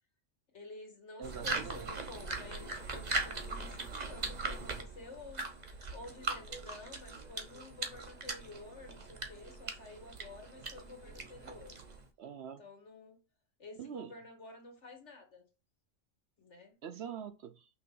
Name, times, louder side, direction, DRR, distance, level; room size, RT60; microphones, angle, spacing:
voice 1, 0.5-5.4 5.9-11.7 12.6-13.2 13.6-15.5 16.4-16.9, left 3 dB, 65° left, 2.1 m, -51 dB
sound 1, 1.2-12.1, right 3 dB, 35° right, 1.0 m, -40 dB
voice 2, 1.2-1.9 12.2-12.6 13.8-14.1 16.8-17.7, right 8 dB, 65° right, 0.9 m, -44 dB
5.7 x 3.5 x 5.4 m
omnidirectional pair, 1.3 m